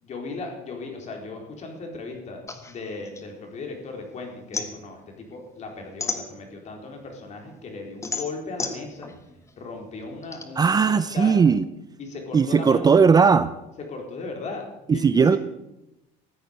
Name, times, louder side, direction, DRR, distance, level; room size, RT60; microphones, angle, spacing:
voice 1, 0.0-2.4 2.7-9.1 9.6-11.5 12.0-12.9 13.9-15.4, left 3 dB, 45° left, 2 dB, 4.3 m, -37 dB
sound 1, 2.5-4.0 4.3-6.8 7.3-10.4, left 4 dB, 15° left, 1.6 m, -34 dB
voice 2, 10.6-11.6 12.3-13.5 14.9-15.4, right 5 dB, 25° right, 13 dB, 0.6 m, -18 dB
14.5 x 9.3 x 8.2 m, 0.92 s
cardioid pair, 130°, 17 cm